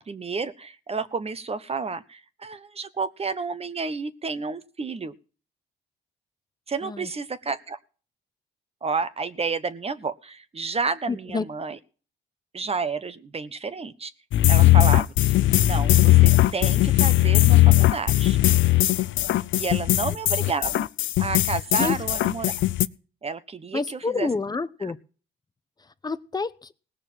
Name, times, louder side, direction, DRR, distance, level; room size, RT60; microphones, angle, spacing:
voice 1, 0.0-5.1 6.7-7.8 8.8-11.8 12.5-14.1 14.5-18.4 19.5-20.9 21.2-22.6 23.2-24.3 24.8-24.9, right 4 dB, 30° right, 12 dB, 1.2 m, -31 dB
voice 2, 11.1-11.5 19.9-20.2 21.8-21.9 23.7-25.0 26.0-26.7, left 4 dB, 20° left, 13 dB, 0.9 m, -29 dB
sound 1, 14.3-22.9, left 16 dB, 75° left, 0.6 m, -19 dB
18.0 x 6.6 x 7.6 m, 0.38 s
cardioid pair, 90°, 20 cm